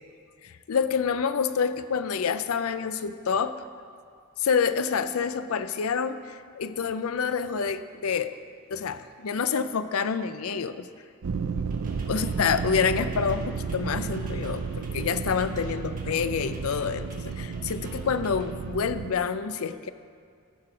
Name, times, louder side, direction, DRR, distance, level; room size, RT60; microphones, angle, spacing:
voice 1, 0.4-3.6 4.4-8.3 8.7-10.9 12.1-19.9, left 6 dB, 85° left, 12 dB, 0.5 m, -27 dB
sound 1, 11.2-19.1, right 5 dB, 75° right, 0.5 m, -32 dB
sound 2, 11.7-18.5, right 2 dB, 40° right, 1.6 m, -49 dB
15.5 x 6.0 x 4.9 m, 2.2 s
head